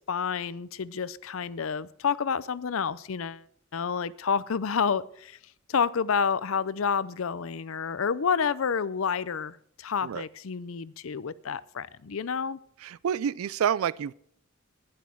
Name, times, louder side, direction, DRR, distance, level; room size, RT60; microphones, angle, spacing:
voice 1, 0.1-3.4 3.7-5.4 5.7-12.6, left 6 dB, 70° left, 0.5 m, -29 dB
voice 2, 13.0-14.1, right 8 dB, 85° right, 0.4 m, -27 dB
11.0 x 10.5 x 4.5 m
head